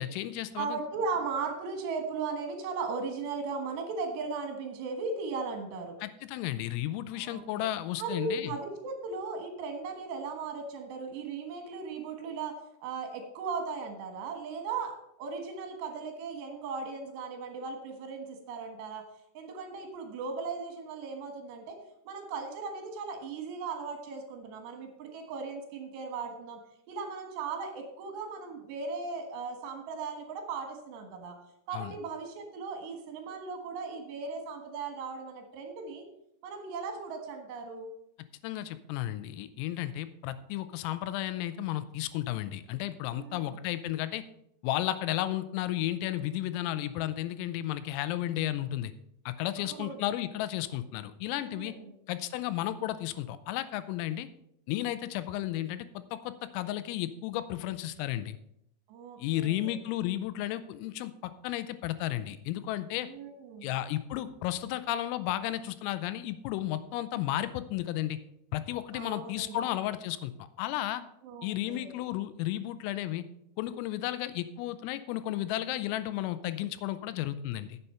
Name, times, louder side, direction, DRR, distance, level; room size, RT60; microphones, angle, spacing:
voice 1, 0.0-0.8 6.0-8.5 31.7-31.9 38.4-44.2 44.6-48.9 49.3-51.7 52.1-54.3 54.7-58.4 59.2-63.1 63.6-68.2 68.5-70.3 70.6-71.0 71.4-73.2 73.6-77.8, left 13 dB, 90° left, 13 dB, 3.4 m, -33 dB
voice 2, 0.6-5.9 7.1-7.6 8.0-12.6 12.8-19.0 19.4-21.8 22.1-26.6 26.9-31.4 31.7-36.1 36.4-37.9 43.2-43.6 49.6-50.1 51.4-51.9 58.9-59.7 63.1-63.7 68.9-69.6 71.2-71.9, right 4 dB, 65° right, 4 dB, 3.4 m, -37 dB
9.8 x 7.9 x 5.6 m, 0.78 s
omnidirectional pair, 5.8 m